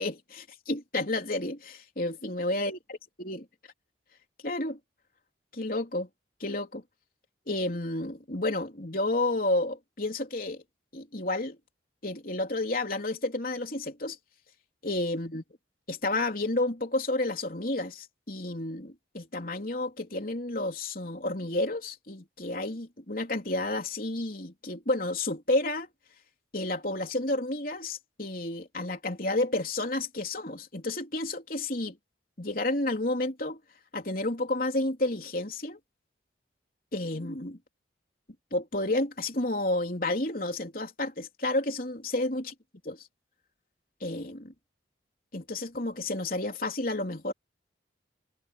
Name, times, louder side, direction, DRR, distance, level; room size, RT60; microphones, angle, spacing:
voice 1, 0.0-3.4 4.4-4.8 5.5-6.1 6.4-6.8 7.5-10.6 10.9-11.6 12.0-14.2 14.8-15.4 15.9-25.9 26.5-32.0 32.4-33.6 33.9-35.8 36.9-37.6 38.5-42.5 42.9-43.0 44.0-44.5 45.3-47.3, left 2 dB, 50° left, 3.8 m, -31 dB
head